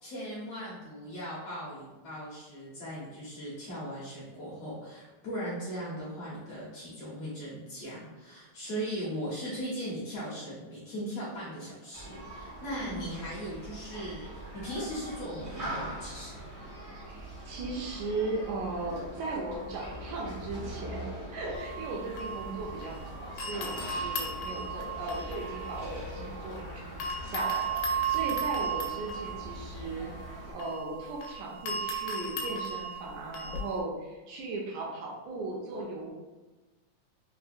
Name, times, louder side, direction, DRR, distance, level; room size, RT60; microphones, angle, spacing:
voice 1, 0.0-16.4, equal, 65° left, -8 dB, 1.7 m, -38 dB
Human group actions, 11.9-30.5, right 1 dB, 50° right, 0.8 m, -42 dB
voice 2, 12.8-13.2 17.0-36.1, right 2 dB, 80° right, -2 dB, 1.8 m, -37 dB
sound 1, 21.5-23.0 23.4-26.6 27.0-33.8, right 4 dB, 90° left, 2.2 m, -35 dB
5.4 x 2.1 x 2.5 m, 1.2 s
omnidirectional pair, 3.8 m